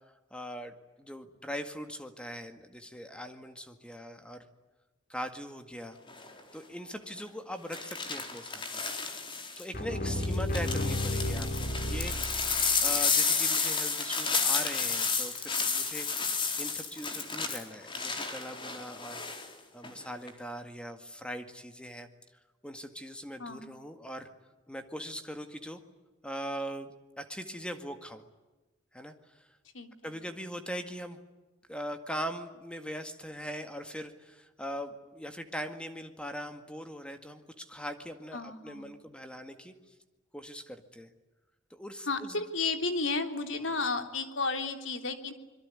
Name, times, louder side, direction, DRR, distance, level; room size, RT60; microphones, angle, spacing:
voice 1, 0.3-4.5 5.1-6.0 6.5-8.9 9.4-12.2 12.8-19.2 19.7-22.1 22.6-24.3 24.7-25.8 26.2-28.2 28.9-29.5 30.0-31.2 31.7-39.7 40.3-41.1 41.7-42.4 43.6-43.8, equal, 5° left, 7 dB, 1.9 m, -41 dB
sound 1, 6.1-6.4 7.7-9.6 10.2-19.5 19.8-20.3, left 5 dB, 25° left, 4.0 m, -31 dB
sound 2, 9.7-12.9, left 1 dB, 50° left, 4.3 m, -32 dB
voice 2, 23.4-23.7 29.7-29.9 38.3-38.9 42.1-45.3, left 3 dB, 75° left, 7 dB, 3.5 m, -33 dB
26.0 x 23.0 x 9.8 m, 1.1 s
head